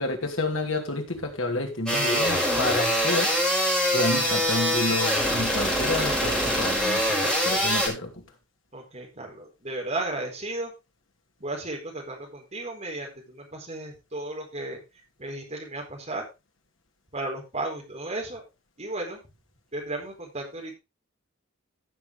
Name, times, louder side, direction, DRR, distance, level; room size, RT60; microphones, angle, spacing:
voice 1, 0.0-3.3 3.9-8.2, left 2 dB, 70° left, 3 dB, 2.6 m, -29 dB
sound 1, 1.9-7.9, equal, 5° left, 5.4 m, -24 dB
voice 2, 8.7-10.7 11.4-14.8 15.2-16.3 17.1-18.4 18.8-19.2 19.7-20.8, right 2 dB, 35° right, 0 dB, 4.5 m, -34 dB
15.0 x 7.4 x 3.4 m, 0.26 s
head